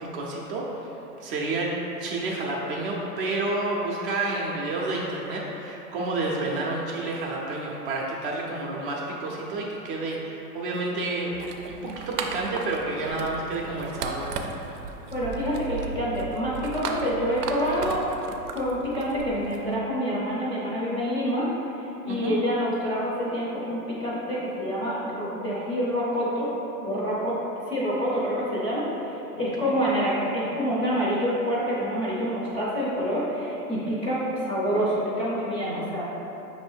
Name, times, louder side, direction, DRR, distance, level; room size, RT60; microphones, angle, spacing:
voice 1, 0.1-0.9 1.2-1.7 2.0-11.3 11.7-14.3 14.7-14.8 22.1-22.4 29.6-29.7, right 2 dB, 40° right, -3 dB, 0.5 m, -30 dB
sound 1, 11.3-19.8, right 4 dB, 80° right, 0.6 m, -36 dB
voice 2, 15.1-18.0 18.5-21.5 21.7-26.5 26.8-27.4 27.7-36.0, equal, 10° left, -9 dB, 0.5 m, -27 dB
5.1 x 2.7 x 3.3 m, 3.0 s
hypercardioid pair, 130°, 46 cm